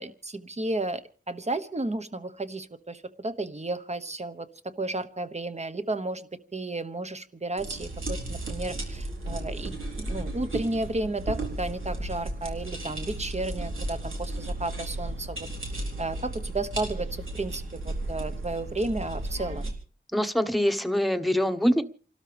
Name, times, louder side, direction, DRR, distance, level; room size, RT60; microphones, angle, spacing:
voice 1, 0.0-4.5 4.8-15.5 15.7-19.7, right 2 dB, 35° right, 11 dB, 1.2 m, -33 dB
sound 1, 7.6-19.7, right 1 dB, 85° right, 3.9 m, -34 dB
voice 2, 20.1-21.8, equal, ahead, 8 dB, 1.2 m, -24 dB
29.5 x 13.0 x 3.5 m, 0.40 s
wide cardioid pair, 75°, 20 cm